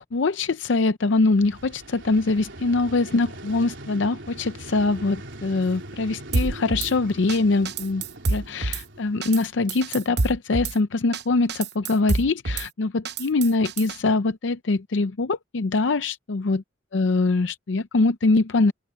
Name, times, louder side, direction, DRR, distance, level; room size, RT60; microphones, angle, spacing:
voice 1, 0.0-8.0 8.3-16.6 16.9-18.7, left 3 dB, 70° left, 0.6 m, -23 dB
Vehicle, 1.1-10.1, right 1 dB, 75° right, 3.8 m, -41 dB
Drum kit / Snare drum, 6.3-6.9 7.3-7.4 7.7-8.8 9.2-9.4 9.7-10.8 11.1-11.2 11.5-12.7 13.1-14.0, right 3 dB, 60° right, 0.8 m, -27 dB
head